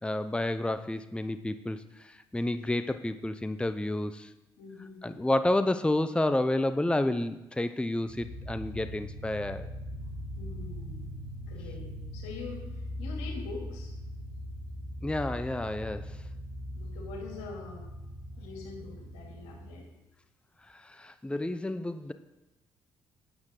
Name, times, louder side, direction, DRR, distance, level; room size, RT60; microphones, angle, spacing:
voice 1, 0.0-4.3 5.0-9.7 15.0-16.2 20.6-22.1, left 1 dB, 10° left, 11 dB, 0.7 m, -30 dB
voice 2, 4.6-5.2 10.3-11.1 11.5-13.9 16.7-17.8 18.4-19.9, left 4 dB, 80° left, 0 dB, 2.9 m, -44 dB
sound 1, 8.1-19.7, equal, 40° left, 4.6 m, -40 dB
13.0 x 8.8 x 3.9 m, 0.98 s
hypercardioid pair, 50°, 11 cm